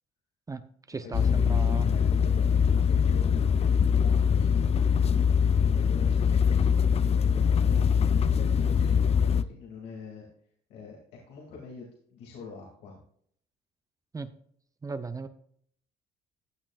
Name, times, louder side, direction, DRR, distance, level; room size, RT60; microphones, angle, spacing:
voice 1, 0.5-1.9 14.1-14.3 14.8-15.3, right 4 dB, 20° right, 11 dB, 0.7 m, -36 dB
voice 2, 1.0-4.8 5.6-10.3 10.7-13.0, left 4 dB, 90° left, -2 dB, 2.5 m, -46 dB
sound 1, 1.1-9.4, left 7 dB, 35° left, 0.5 m, -23 dB
15.0 x 8.9 x 2.4 m, 0.63 s
cardioid pair, 110°, 17 cm